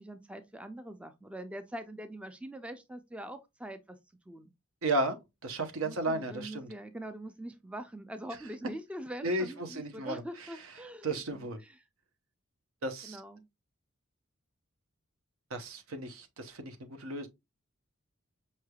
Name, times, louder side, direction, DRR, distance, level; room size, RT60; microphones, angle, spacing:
voice 1, 0.0-4.0 4.3-4.5 5.8-11.8 13.0-13.4, right 1 dB, 5° right, 0.3 m, -43 dB
voice 2, 4.8-5.2 5.4-6.7 9.2-10.2 11.0-11.6 12.8-13.2 15.5-17.3, right 2 dB, 80° right, 0.8 m, -33 dB
5.4 x 3.2 x 2.3 m
head